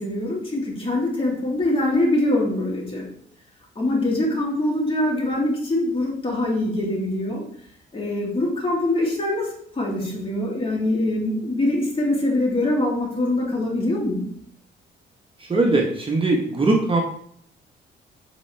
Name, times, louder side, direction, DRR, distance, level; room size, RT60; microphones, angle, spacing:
voice 1, 0.0-3.1 3.8-7.4 7.9-9.5 9.8-14.2, left 1 dB, 25° left, -3 dB, 2.7 m, -23 dB
voice 2, 15.5-17.0, right 2 dB, 25° right, 0 dB, 1.1 m, -20 dB
8.1 x 4.7 x 3.3 m, 0.64 s
cardioid pair, 90°, 20 cm